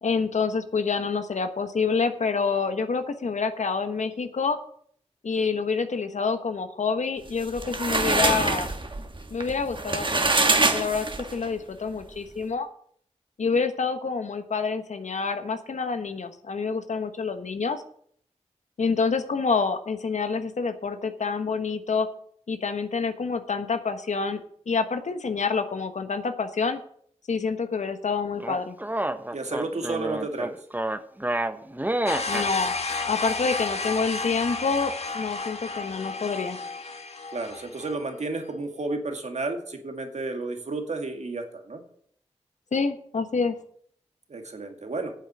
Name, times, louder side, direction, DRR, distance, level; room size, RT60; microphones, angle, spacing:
voice 1, 0.0-4.6 5.2-8.7 9.3-11.1 11.3-12.7 13.4-17.8 18.8-22.1 22.5-24.4 24.7-26.8 27.3-28.8 32.3-32.7 33.1-36.6 42.7-43.6, left 5 dB, 80° left, 9 dB, 1.2 m, -27 dB
sound 1, 7.3-11.5, right 2 dB, 45° right, 1.5 m, -24 dB
sound 2, 28.4-32.5, right 1 dB, 15° right, 0.9 m, -29 dB
voice 2, 29.3-30.5 37.3-41.8 44.3-45.1, right 3 dB, 70° right, 4 dB, 2.2 m, -32 dB
sound 3, 32.1-38.0, left 3 dB, 60° left, 1.4 m, -32 dB
9.1 x 7.8 x 8.8 m, 0.63 s
cardioid pair, 45°, 12 cm